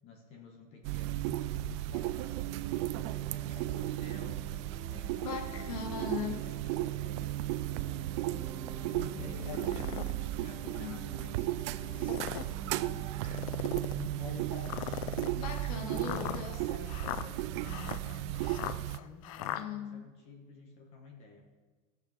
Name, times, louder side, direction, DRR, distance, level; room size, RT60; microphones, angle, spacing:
voice 1, 0.0-4.5 4.8-8.5 8.9-10.1 10.4-13.4 13.9-15.3 15.9-21.5, left 4 dB, 30° left, 1 dB, 1.4 m, -50 dB
sound 1, 0.8-19.0, right 16 dB, 50° right, 0.4 m, -35 dB
sound 2, 1.8-15.3, right 1 dB, 15° right, 2.7 m, -49 dB
voice 2, 5.2-6.4 9.5-9.6 10.7-11.0 14.2-14.7 15.2-16.6 19.5-20.1, left 6 dB, 80° left, 4 dB, 2.0 m, -40 dB
sound 3, 9.4-10.1 10.7-10.8 11.9-12.5 13.2-14.0 14.6-19.6, left 13 dB, 65° left, 0.5 m, -39 dB
15.0 x 6.7 x 5.1 m, 1.3 s
supercardioid pair, 170°, 19 cm